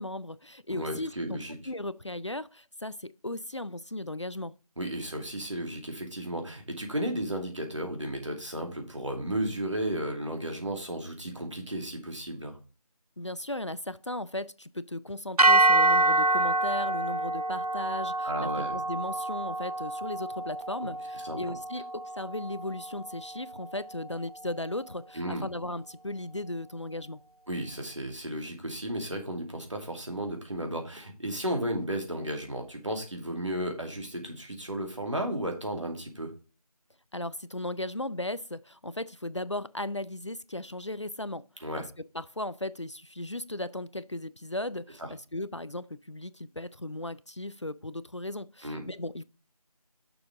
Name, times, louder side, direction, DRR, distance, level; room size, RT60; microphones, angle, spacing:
voice 1, 0.0-1.4 1.7-4.5 13.2-27.2 37.1-41.5 42.1-49.2, left 1 dB, 50° left, 0.4 m, -36 dB
voice 2, 0.7-1.5 4.8-12.6 18.2-18.8 21.2-21.5 25.1-25.5 27.5-36.3 41.6-41.9 45.0-45.1 48.6-48.8, right 1 dB, 55° right, 2.5 m, -34 dB
sound 1, 15.4-23.6, right 2 dB, 80° right, 0.8 m, -27 dB
6.7 x 6.0 x 4.7 m
figure-of-eight pair, 175°, 19 cm